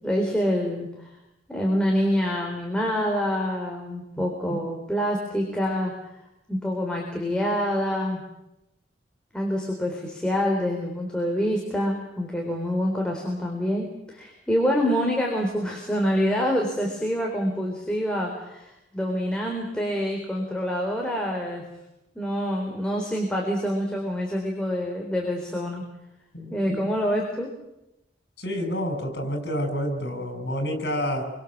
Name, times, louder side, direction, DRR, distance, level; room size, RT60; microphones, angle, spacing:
voice 1, 0.0-1.1 1.5-5.9 6.5-8.2 9.3-21.6 22.2-25.8 26.5-27.5, equal, 5° left, -1 dB, 4.1 m, -26 dB
voice 2, 28.4-31.3, equal, 65° left, 6 dB, 6.7 m, -29 dB
28.0 x 24.5 x 7.5 m, 0.90 s
head